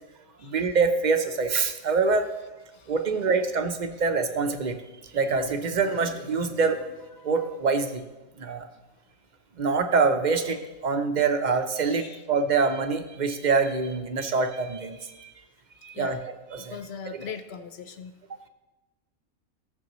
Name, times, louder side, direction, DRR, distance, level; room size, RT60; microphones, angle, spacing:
voice 1, 0.4-2.3 2.9-4.8 5.1-6.8 7.2-8.0 8.4-8.7 9.6-15.3 15.8-16.8 17.1-17.3, right 4 dB, 40° right, 7 dB, 0.7 m, -25 dB
voice 2, 16.7-18.1, left 6 dB, 55° left, 10 dB, 0.9 m, -39 dB
17.0 x 7.1 x 3.1 m, 1.1 s
omnidirectional pair, 1.4 m